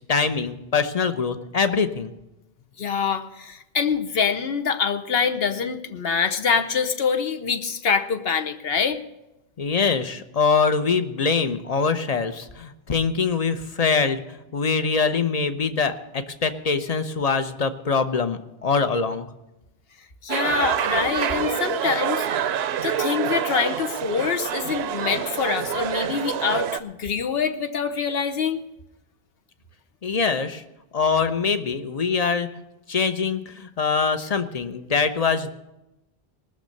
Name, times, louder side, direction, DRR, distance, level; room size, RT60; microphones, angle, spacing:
voice 1, 0.0-2.1 9.6-14.2 14.5-19.3 30.0-30.6 30.9-32.5 32.9-35.5, left 5 dB, 40° left, 10 dB, 0.8 m, -23 dB
voice 2, 2.8-9.0 20.2-22.3 22.8-28.6, left 6 dB, 70° left, 7 dB, 1.1 m, -25 dB
sound 1, 20.3-26.8, right 9 dB, 75° right, 0.8 m, -26 dB
19.5 x 6.5 x 6.6 m, 0.94 s
omnidirectional pair, 1.1 m